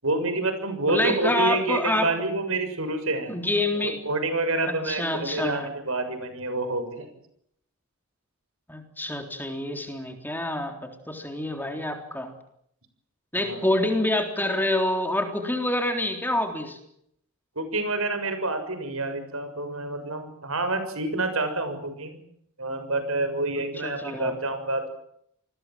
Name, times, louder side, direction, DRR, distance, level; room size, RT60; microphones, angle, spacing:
voice 1, 0.0-3.4 3.7-7.1 13.4-13.6 17.6-22.2 22.6-24.9, right 2 dB, 70° right, 9 dB, 6.9 m, -28 dB
voice 2, 0.9-2.1 3.3-4.0 4.7-5.7 8.7-12.3 13.3-16.8 23.8-24.3, left 1 dB, 10° left, 4 dB, 3.7 m, -27 dB
29.5 x 21.0 x 7.7 m, 0.72 s
head